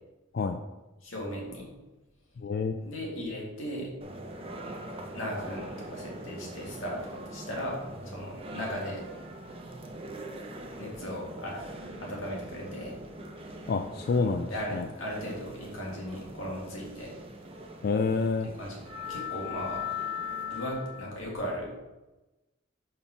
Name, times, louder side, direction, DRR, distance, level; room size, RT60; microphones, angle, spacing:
voice 1, 1.0-1.7 2.8-3.9 5.1-7.8 8.0-9.0 10.8-13.0 14.5-17.1 18.6-19.8 20.5-21.7, equal, 85° left, -3 dB, 2.1 m, -37 dB
voice 2, 2.4-2.8 13.7-14.8 17.8-18.5, left 4 dB, 50° left, 7 dB, 0.3 m, -28 dB
sound 1, 4.0-21.2, left 2 dB, 30° right, 0.7 m, -41 dB
5.4 x 4.3 x 5.7 m, 1.1 s
head